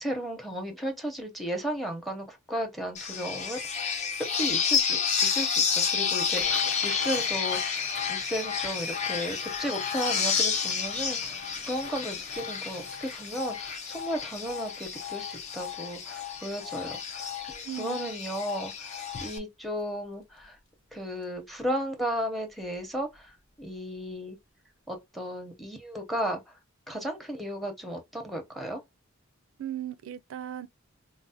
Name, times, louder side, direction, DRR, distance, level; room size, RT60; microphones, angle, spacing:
voice 1, 0.0-3.9 4.3-20.6 20.9-24.4 24.9-26.4 26.9-28.8, equal, ahead, 0.7 m, -35 dB
sound 1, 2.9-19.4, left 6 dB, 35° left, 0.6 m, -30 dB
sound 2, 6.2-19.3 19.8-20.1 20.4-20.8 21.2-21.4 22.6-22.8 23.1-23.3 23.7-23.8, left 4 dB, 60° left, 1.0 m, -47 dB
voice 2, 17.6-18.2 29.6-30.7, right 11 dB, 80° right, 0.4 m, -37 dB
4.5 x 2.0 x 2.7 m
head